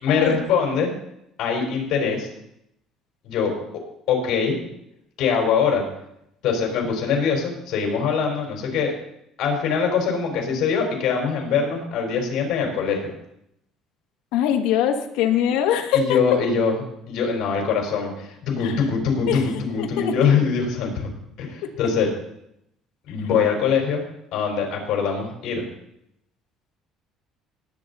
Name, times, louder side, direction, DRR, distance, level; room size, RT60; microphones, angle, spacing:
voice 1, 0.0-0.9 1.4-2.3 3.2-3.5 4.1-4.6 5.2-5.8 6.4-8.9 9.4-13.1 15.9-21.1 21.4-22.1 23.1-24.0 24.3-25.6, left 6 dB, 60° left, 1 dB, 4.5 m, -23 dB
voice 2, 14.3-16.2 18.6-18.8 19.3-19.4 19.8-20.1, left 9 dB, 80° left, 6 dB, 1.4 m, -22 dB
19.5 x 8.8 x 4.1 m, 0.78 s
cardioid pair, 145°, 0 cm